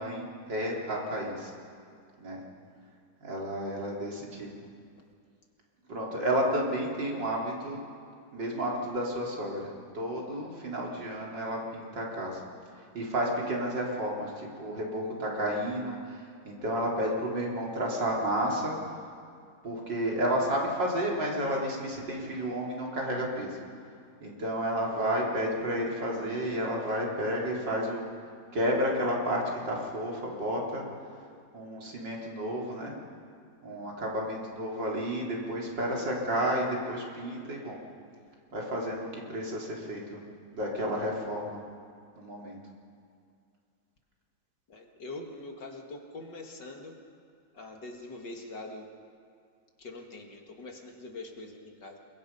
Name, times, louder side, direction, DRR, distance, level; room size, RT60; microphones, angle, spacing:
voice 1, 0.0-1.5 2.2-2.4 3.2-4.5 5.9-7.8 8.3-12.4 12.9-19.0 19.6-23.6 24.2-28.1 28.5-30.9 31.5-32.9 33.6-37.8 38.5-40.2 40.5-41.6 42.2-42.6, equal, 65° right, -2 dB, 4.3 m, -31 dB
voice 2, 44.7-46.9 47.5-48.9 49.8-52.0, left 2 dB, 65° left, 2 dB, 2.7 m, -43 dB
28.5 x 22.5 x 5.5 m, 2.3 s
omnidirectional pair, 2.1 m